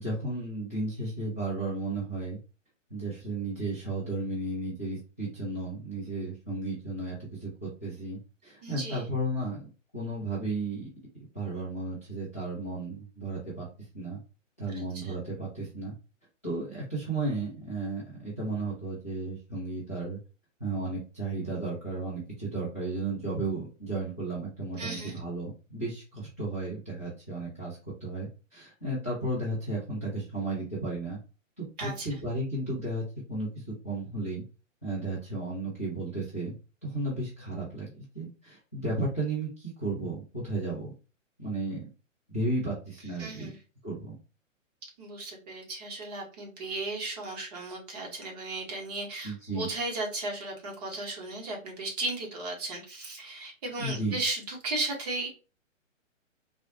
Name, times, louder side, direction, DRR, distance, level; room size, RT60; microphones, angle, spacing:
voice 1, 0.0-2.4 2.9-10.8 11.3-13.7 13.9-14.2 14.6-15.9 16.4-20.2 20.6-31.2 31.6-34.4 34.8-36.5 36.8-37.9 38.1-40.9 41.4-41.8 42.3-43.5 43.8-44.1 49.2-49.7 53.8-54.2, right 2 dB, 15° left, -11 dB, 0.4 m, -34 dB
voice 2, 8.6-9.0 14.7-15.1 24.8-25.2 31.8-32.1 43.2-43.6 45.0-55.3, right 2 dB, 30° right, 0 dB, 0.9 m, -35 dB
3.9 x 2.1 x 2.5 m, 0.33 s
hypercardioid pair, 155°, 39 cm